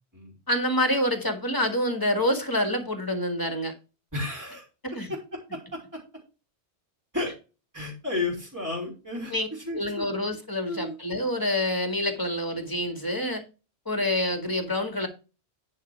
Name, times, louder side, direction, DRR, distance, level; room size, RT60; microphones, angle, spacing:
voice 1, 0.5-3.7 4.8-5.1 9.3-9.5 9.7-13.4 13.9-15.1, left 1 dB, 20° left, 2.1 m, -27 dB
voice 2, 4.1-4.6 5.3-6.0 7.1-7.3 7.7-10.1 10.6-11.0, left 2 dB, 15° right, 3.1 m, -33 dB
9.9 x 5.5 x 4.6 m
omnidirectional pair, 1.1 m